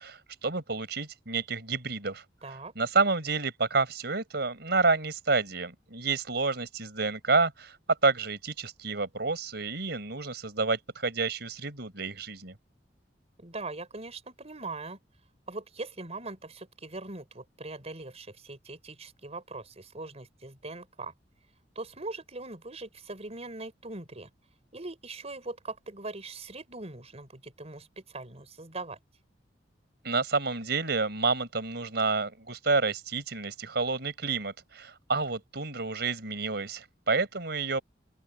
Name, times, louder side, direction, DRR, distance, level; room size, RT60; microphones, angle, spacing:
voice 1, 0.0-2.2 2.7-7.8 8.0-12.5 30.0-37.8, right 4 dB, 65° right, 5.1 m, -29 dB
voice 2, 2.4-2.7 13.4-15.0 15.5-21.1 21.8-24.3 24.7-29.0, right 2 dB, 35° right, 5.6 m, -41 dB
open air
head